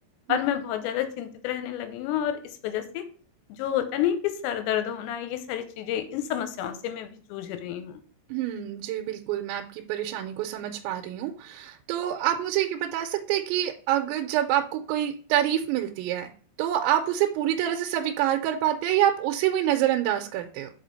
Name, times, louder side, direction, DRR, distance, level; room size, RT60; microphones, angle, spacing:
voice 1, 0.3-3.0 3.6-8.0, left 10 dB, 85° left, 9 dB, 2.9 m, -29 dB
voice 2, 8.3-16.3 16.6-20.7, right 12 dB, 85° right, 5 dB, 2.9 m, -26 dB
6.2 x 5.0 x 4.0 m, 0.44 s
omnidirectional pair, 5.2 m